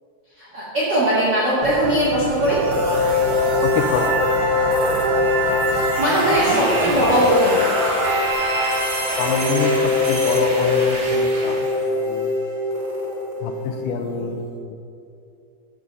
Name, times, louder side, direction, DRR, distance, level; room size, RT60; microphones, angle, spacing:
voice 1, 0.4-2.6 5.7-7.7, right 1 dB, 55° right, -8 dB, 1.2 m, -20 dB
sound 1, 1.6-6.0, right 1 dB, 90° right, 1.4 m, -32 dB
sound 2, 2.4-14.3, left 2 dB, 75° right, 1.0 m, -22 dB
voice 2, 3.6-4.1 9.2-12.3 13.4-14.8, left 5 dB, 80° left, 5 dB, 2.0 m, -26 dB
sound 3, 6.1-11.8, right 1 dB, 40° right, 2.4 m, -32 dB
7.3 x 6.1 x 6.8 m, 2.5 s
omnidirectional pair, 4.3 m